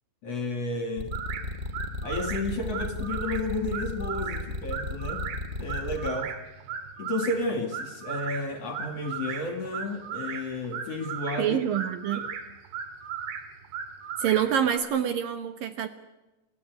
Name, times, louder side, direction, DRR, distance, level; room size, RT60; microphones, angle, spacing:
voice 1, 0.2-1.1 2.0-5.3 5.6-6.3 7.0-11.6 12.1-12.2, left 2 dB, 45° left, 5 dB, 2.7 m, -32 dB
sound 1, 1.0-6.1, left 2 dB, 15° right, 1.7 m, -34 dB
sound 2, 1.1-14.8, right 7 dB, 90° right, 4.0 m, -37 dB
voice 2, 11.4-12.2 14.2-15.9, right 9 dB, 65° right, 8 dB, 2.5 m, -26 dB
29.0 x 14.5 x 9.5 m, 1.1 s
omnidirectional pair, 4.9 m